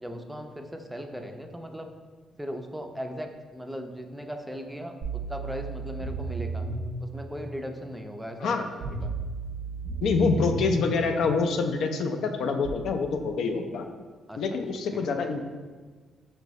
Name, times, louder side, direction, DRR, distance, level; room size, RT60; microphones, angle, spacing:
voice 1, 0.0-1.9 2.4-6.7 7.0-9.1 14.3-14.6 14.9-15.1, equal, 5° right, 4 dB, 0.4 m, -38 dB
sound 1, 5.0-7.0 8.8-10.8 12.7-12.8, right 4 dB, 80° right, 0.6 m, -33 dB
voice 2, 10.0-13.9 14.4-15.4, left 4 dB, 75° left, 5 dB, 0.3 m, -26 dB
5.4 x 2.6 x 3.0 m, 1.4 s
cardioid pair, 90°, 0 cm